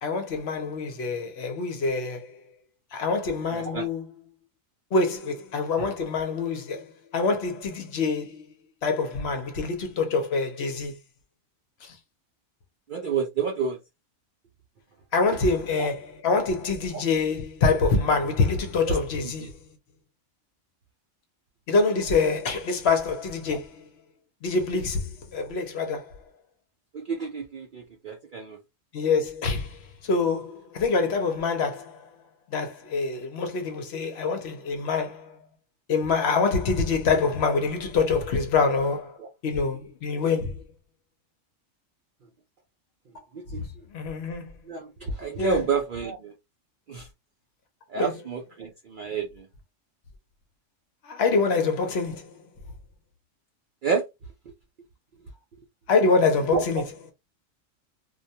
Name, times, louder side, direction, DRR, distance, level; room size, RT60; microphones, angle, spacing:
voice 1, 0.0-2.5 2.9-4.1 4.9-8.4 8.8-11.0 11.8-12.0 15.1-19.6 21.7-23.9 24.4-26.2 28.9-32.1 32.5-35.4 35.9-40.6 43.5-43.7 43.9-44.5 45.4-45.7 47.9-48.1 51.0-52.3 55.9-56.9, left 4 dB, 60° left, 0.8 m, -25 dB
voice 2, 3.5-3.9 12.9-13.8 15.8-15.9 18.9-19.0 19.4-19.5 26.9-28.6 39.2-39.3 43.3-43.7 44.7-46.3 46.9-47.1 47.9-49.5 53.8-54.0 56.5-56.6, right 5 dB, 65° right, 0.5 m, -29 dB
2.3 x 2.2 x 2.7 m
omnidirectional pair, 1.3 m